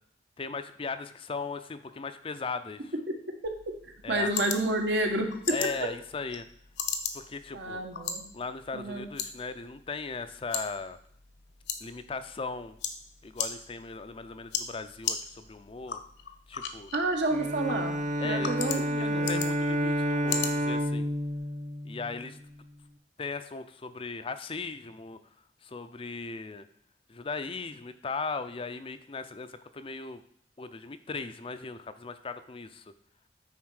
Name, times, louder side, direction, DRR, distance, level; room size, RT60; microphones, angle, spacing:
voice 1, 0.4-2.9 4.0-4.3 5.5-6.5 7.1-7.8 8.3-11.0 11.8-12.8 13.2-16.0 16.5-16.9 18.2-21.1 21.8-22.4 23.2-25.2 25.6-26.7 27.1-30.2 30.6-32.8, left 4 dB, 30° left, 11 dB, 0.5 m, -38 dB
Mouse Buttons, 3.4-21.4, left 6 dB, 70° left, 1.0 m, -39 dB
voice 2, 4.1-5.5 7.5-8.3 8.7-9.1 16.9-18.0 18.2-19.4, right 2 dB, 70° right, 3 dB, 1.5 m, -29 dB
Bowed string instrument, 17.3-22.5, equal, 45° right, 0.8 m, -30 dB
9.4 x 4.1 x 6.3 m, 0.64 s
head